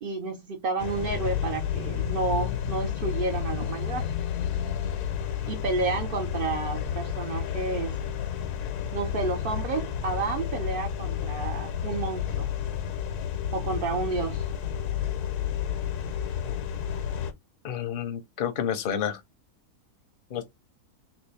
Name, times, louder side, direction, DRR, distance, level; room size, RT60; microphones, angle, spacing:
voice 1, 0.0-4.1 5.5-8.0 8.9-12.5 13.5-14.5, right 4 dB, 65° right, 0.5 m, -31 dB
sound 1, 0.8-17.3, left 9 dB, 80° left, 1.3 m, -31 dB
voice 2, 17.6-19.2 20.3-20.4, left 9 dB, 50° left, 0.7 m, -29 dB
3.1 x 3.0 x 3.3 m
omnidirectional pair, 1.6 m